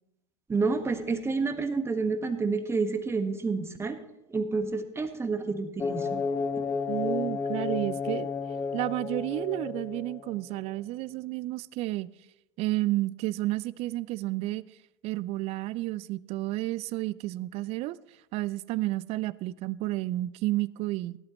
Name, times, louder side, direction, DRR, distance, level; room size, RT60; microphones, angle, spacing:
voice 1, 0.5-4.0 4.3-6.2, right 4 dB, 15° right, 8 dB, 1.4 m, -29 dB
sound 1, 5.8-10.5, left 5 dB, 20° left, 0.7 m, -32 dB
voice 2, 6.9-8.3 8.7-12.1 12.6-14.6 15.0-18.0 18.3-21.2, right 17 dB, 45° right, 20 dB, 0.5 m, -31 dB
17.5 x 11.5 x 3.1 m, 0.90 s
hypercardioid pair, 85°, 15 cm